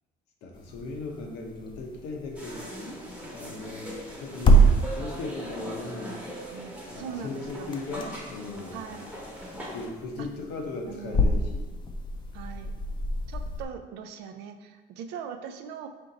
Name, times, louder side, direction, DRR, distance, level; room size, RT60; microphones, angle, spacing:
voice 1, 0.4-2.6 3.3-6.5 6.9-8.8 9.7-11.7, left 3 dB, 85° left, 1 dB, 0.8 m, -38 dB
sound 1, 0.5-13.6, right 2 dB, 25° left, 0.5 m, -28 dB
sound 2, 2.3-9.9, equal, 5° right, 1.0 m, -40 dB
voice 2, 6.5-7.8 8.7-9.1 10.2-10.3 10.9-11.3 12.3-12.7 13.3-15.9, right 7 dB, 90° right, 8 dB, 0.4 m, -40 dB
4.4 x 2.5 x 3.9 m, 1.2 s
cardioid pair, 110°, 17 cm